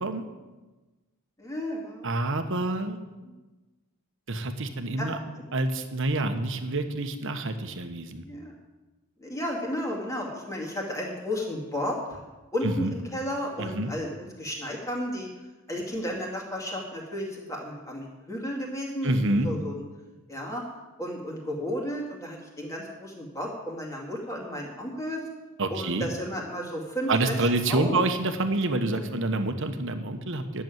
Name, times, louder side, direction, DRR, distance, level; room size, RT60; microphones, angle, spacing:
voice 1, 1.4-2.1 3.2-3.3 5.0-5.1 8.2-8.5 9.2-12.2 12.5-15.3 15.7-19.1 19.4-19.8 20.3-20.6 21.0-25.2 25.7-27.3 27.7-28.0 28.9-29.1, equal, 15° left, -1 dB, 2.3 m, -33 dB
voice 2, 2.0-3.0 4.3-5.2 5.5-8.3 12.6-12.9 13.6-13.9 19.0-19.5 25.6-26.1 27.1-30.6, right 2 dB, 55° right, 7 dB, 1.1 m, -27 dB
10.5 x 7.1 x 9.2 m, 1.2 s
head